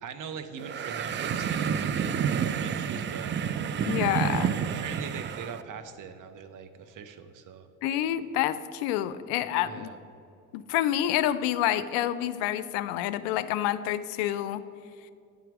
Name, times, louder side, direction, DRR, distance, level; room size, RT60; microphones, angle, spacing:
voice 1, 0.0-3.7 4.2-7.7 9.6-10.0, right 6 dB, 50° right, 9 dB, 0.8 m, -41 dB
sound 1, 0.6-5.6, right 7 dB, 30° right, 0.4 m, -29 dB
voice 2, 3.8-4.5 7.8-9.9 10.5-14.6, left 12 dB, 70° left, 13 dB, 0.5 m, -28 dB
9.5 x 4.5 x 6.0 m, 2.5 s
hypercardioid pair, 60°, 42 cm